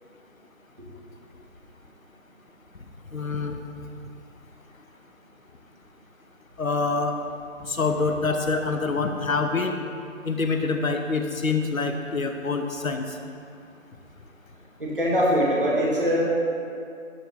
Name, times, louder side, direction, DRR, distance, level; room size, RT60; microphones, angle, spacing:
voice 1, 3.1-3.6 6.6-7.1 7.6-9.7 10.2-13.0, left 4 dB, 80° left, 5 dB, 1.0 m, -26 dB
voice 2, 14.8-16.2, equal, 40° right, -5 dB, 1.8 m, -22 dB
12.0 x 4.8 x 4.1 m, 2.5 s
figure-of-eight pair, 170°, 41 cm